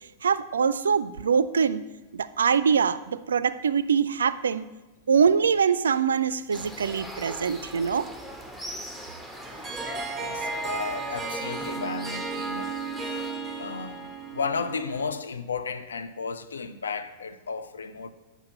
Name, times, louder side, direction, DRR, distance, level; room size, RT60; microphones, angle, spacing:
voice 1, 0.2-1.8 2.1-4.7 5.1-8.1, right 6 dB, 70° right, 0.3 m, -23 dB
sound 1, 6.5-13.3, equal, 5° left, 0.9 m, -40 dB
Harp, 9.4-15.2, right 4 dB, 15° right, 1.3 m, -34 dB
voice 2, 10.2-12.7 13.6-18.1, left 5 dB, 70° left, 0.5 m, -33 dB
7.8 x 4.7 x 6.6 m
figure-of-eight pair, 90°, 0 cm